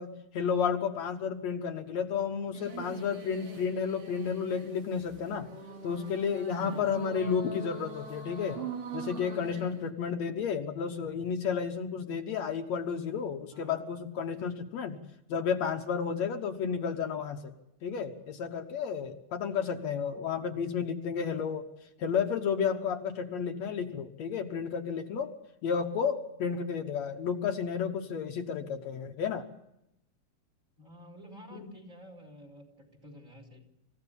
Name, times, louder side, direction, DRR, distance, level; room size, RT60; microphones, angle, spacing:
voice 1, 0.0-5.5 5.8-8.6 8.9-15.0 15.3-17.5 17.8-21.6 22.0-25.3 25.6-29.5 31.5-31.7, left 6 dB, 70° left, 4 dB, 2.4 m, -32 dB
sound 1, 2.5-9.9, right 4 dB, 55° right, 3.2 m, -43 dB
voice 2, 6.6-7.1 10.8-11.2 13.5-13.8 14.4-14.5 16.1-16.2 30.8-33.6, equal, 25° right, 4 dB, 4.5 m, -51 dB
27.5 x 16.0 x 7.2 m, 0.83 s
omnidirectional pair, 3.3 m